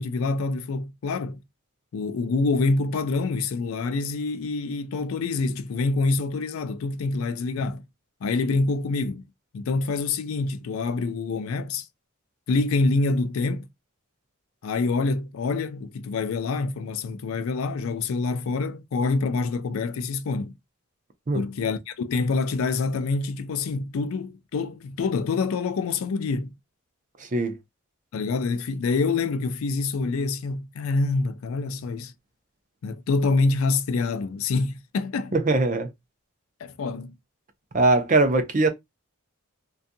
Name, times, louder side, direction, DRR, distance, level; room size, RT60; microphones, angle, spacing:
voice 1, 0.0-1.4 1.9-7.8 8.2-9.2 9.5-11.9 12.5-13.7 14.6-20.5 21.3-26.5 28.1-32.1 32.8-35.3 36.6-37.1, left 3 dB, 75° left, 0.4 m, -26 dB
voice 2, 27.2-27.6 35.3-35.9 37.7-38.7, right 2 dB, 35° right, 0.4 m, -21 dB
2.6 x 2.3 x 2.5 m
head